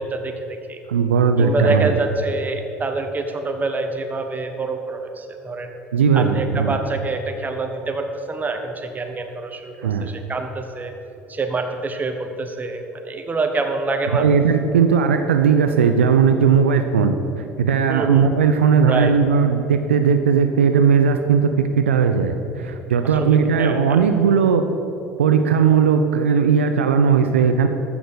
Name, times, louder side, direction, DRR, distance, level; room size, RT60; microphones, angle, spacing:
voice 1, 0.0-0.8 1.4-5.7 6.1-10.9 11.3-14.3 17.9-18.3 18.9-19.1 23.2-24.1, right 3 dB, 25° right, 5 dB, 1.4 m, -26 dB
voice 2, 0.9-2.0 5.9-6.8 9.8-10.1 14.1-24.7 25.2-27.7, right 6 dB, 80° right, 7 dB, 0.5 m, -17 dB
14.0 x 6.0 x 6.9 m, 2.9 s
figure-of-eight pair, 60°, 7 cm